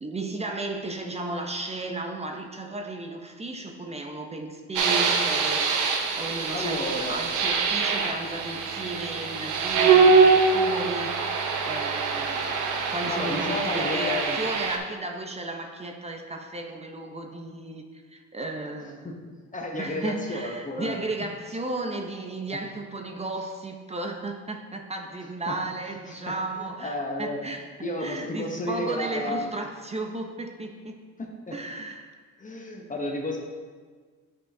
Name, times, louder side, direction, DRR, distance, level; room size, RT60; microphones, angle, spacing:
voice 1, 0.0-12.6 12.9-19.1 19.8-31.0 31.5-32.1, right 2 dB, 20° right, 3 dB, 0.6 m, -34 dB
sound 1, 4.8-14.8, right 5 dB, 85° right, 0.8 m, -23 dB
voice 2, 6.5-7.3 13.1-14.4 19.0-19.2 19.5-21.0 25.5-25.6 26.3-26.4 26.6-27.4 27.8-29.5 31.2-31.6 32.4-33.4, left 1 dB, 25° left, 1 dB, 0.9 m, -32 dB
8.4 x 6.0 x 2.7 m, 1.5 s
cardioid pair, 90°, 30 cm